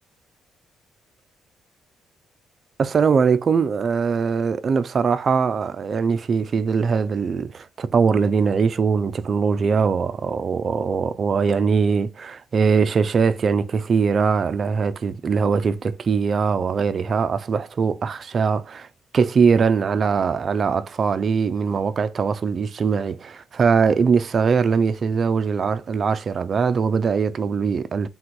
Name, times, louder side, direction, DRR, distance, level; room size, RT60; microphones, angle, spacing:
voice 1, 2.8-18.9 19.1-28.1, right 5 dB, 45° right, 0.3 m, -21 dB
3.5 x 2.5 x 4.5 m
cardioid pair, 90°, 0 cm